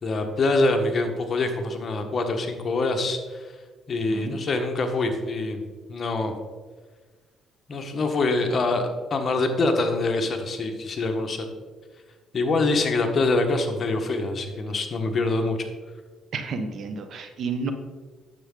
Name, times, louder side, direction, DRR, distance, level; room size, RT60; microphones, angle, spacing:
voice 1, 0.0-3.5 3.9-5.6 5.9-6.3 7.7-11.5 12.3-15.7, left 2 dB, 40° left, 5 dB, 1.3 m, -25 dB
voice 2, 16.3-17.7, right 4 dB, 60° right, 8 dB, 1.0 m, -31 dB
9.5 x 7.2 x 3.9 m, 1.4 s
cardioid pair, 85°, 0 cm